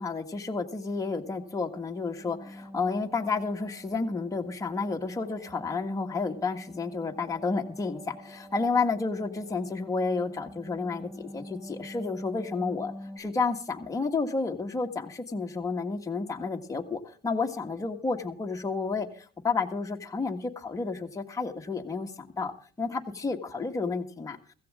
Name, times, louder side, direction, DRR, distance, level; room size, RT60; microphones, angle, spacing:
voice 1, 0.0-22.5 22.8-24.4, left 4 dB, 20° left, 3 dB, 1.7 m, -31 dB
sound 1, 2.2-13.2, equal, 30° right, 5.6 m, -46 dB
16.0 x 15.0 x 3.6 m, 0.41 s
cardioid pair, 110°, 17 cm